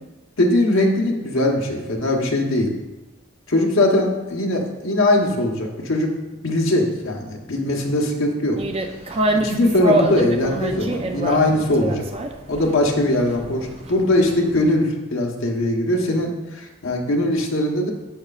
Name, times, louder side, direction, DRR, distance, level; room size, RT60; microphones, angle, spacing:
voice 1, 0.4-2.7 3.5-6.1 6.4-8.6 9.3-12.1 12.5-17.9, left 1 dB, 70° left, 1 dB, 1.1 m, -20 dB
sound 1, 8.6-14.7, right 1 dB, 25° right, 0.4 m, -26 dB
9.4 x 6.6 x 2.4 m, 1.1 s
head